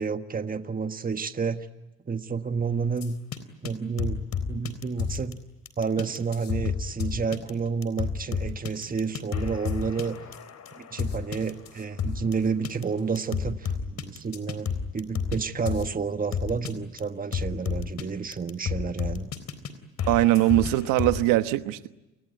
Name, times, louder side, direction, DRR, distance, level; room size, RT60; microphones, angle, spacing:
voice 1, 0.0-1.7 2.1-3.2 3.6-5.4 5.8-10.2 10.8-14.7 14.9-19.3, right 5 dB, 25° right, 1.5 m, -30 dB
sound 1, 3.0-3.4 3.6-3.7 4.0-5.3 5.7-12.3 12.6-12.8 13.2-15.4 15.7-15.9 16.3-16.7 17.0-17.1 17.3-18.0 18.3-19.7 20.0-21.2, left 6 dB, 55° left, 3.8 m, -30 dB
voice 2, 20.1-21.9, right 16 dB, 90° right, 1.2 m, -21 dB
29.0 x 20.5 x 9.3 m
supercardioid pair, 75°, 31 cm